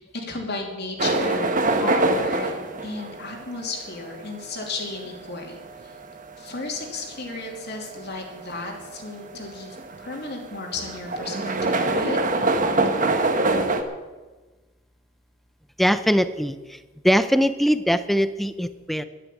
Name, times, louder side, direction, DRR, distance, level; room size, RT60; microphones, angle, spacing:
voice 1, 0.0-1.5 1.8-2.5 2.8-5.9 6.4-12.2, left 3 dB, 55° left, 1 dB, 2.9 m, -33 dB
sound 1, 1.0-13.8, right 2 dB, 40° right, 1.3 m, -25 dB
voice 2, 15.8-16.8 17.0-19.0, equal, ahead, 12 dB, 0.6 m, -21 dB
11.5 x 11.0 x 8.8 m, 1.2 s
head